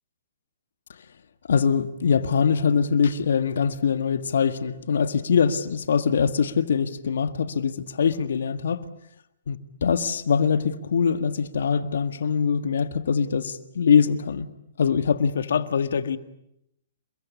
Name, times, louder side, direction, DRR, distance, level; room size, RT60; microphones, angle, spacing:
voice 1, 1.5-8.8 9.5-14.5 14.8-16.2, left 6 dB, 70° left, 1.8 m, -23 dB
28.5 x 22.5 x 8.5 m
hypercardioid pair, 130°, 0 cm